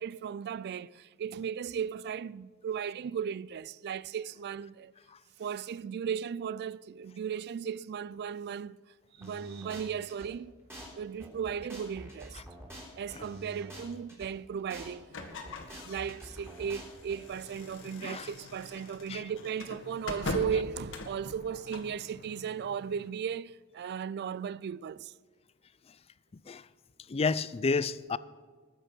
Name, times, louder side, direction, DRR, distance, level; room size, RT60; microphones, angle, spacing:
voice 1, 0.0-4.9 5.4-8.8 9.2-10.5 11.0-12.4 13.0-15.1 15.4-15.6 15.8-25.1, right 7 dB, 50° right, 0.3 m, -36 dB
sound 1, 9.2-10.3 10.7-10.9 11.2-14.3 14.7-14.9 15.2-17.2, equal, 10° right, 3.8 m, -46 dB
sound 2, 15.1-22.0, left 2 dB, 65° left, 1.8 m, -42 dB
sound 3, 17.3-23.1, left 1 dB, 50° left, 1.1 m, -53 dB
voice 2, 18.0-18.3 19.1-19.2 26.3-26.7 27.1-28.2, left 4 dB, 25° left, 0.4 m, -31 dB
20.0 x 8.1 x 6.1 m
head